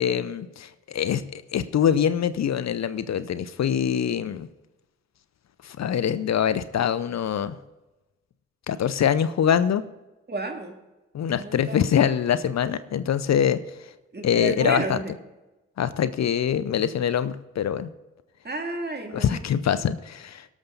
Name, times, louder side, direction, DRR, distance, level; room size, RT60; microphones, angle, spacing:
voice 1, 0.0-4.5 5.6-7.6 8.7-9.8 11.1-13.6 14.2-15.0 15.8-17.9 19.1-20.5, left 8 dB, 65° left, 14 dB, 0.7 m, -24 dB
voice 2, 10.3-10.7 11.4-11.8 14.1-15.1 18.4-19.4, right 2 dB, 35° right, 3 dB, 2.4 m, -31 dB
18.0 x 7.2 x 3.9 m, 1.1 s
supercardioid pair, 45°, 30 cm